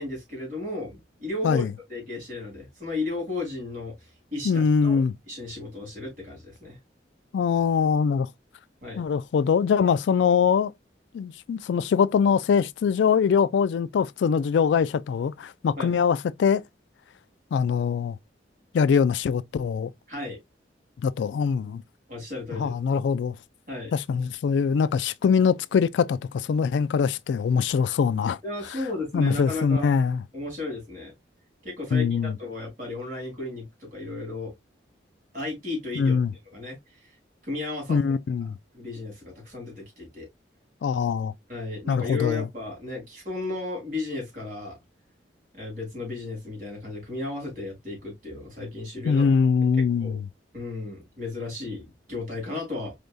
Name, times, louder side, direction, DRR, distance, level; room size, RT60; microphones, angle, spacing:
voice 1, 0.0-1.6 1.9-3.9 4.3-5.0 5.3-6.8 8.8-9.0 15.7-15.9 20.1-20.4 22.1-22.7 23.7-23.9 28.4-29.9 30.3-31.1 31.6-34.5 35.3-36.2 36.5-36.8 37.4-38.0 38.7-40.3 41.5-44.8 45.5-49.2 49.8-50.2 50.5-52.9, left 2 dB, 45° right, 3.1 m, -34 dB
voice 2, 4.4-5.1 7.3-8.3 9.0-10.7 11.1-16.6 17.5-18.2 18.7-19.9 21.0-21.8 22.5-23.4 23.9-28.4 29.1-30.2 31.9-32.4 36.0-36.3 37.9-38.6 40.8-41.3 41.9-42.5 49.1-50.3, left 6 dB, 70° left, 0.3 m, -23 dB
4.4 x 3.4 x 2.5 m
head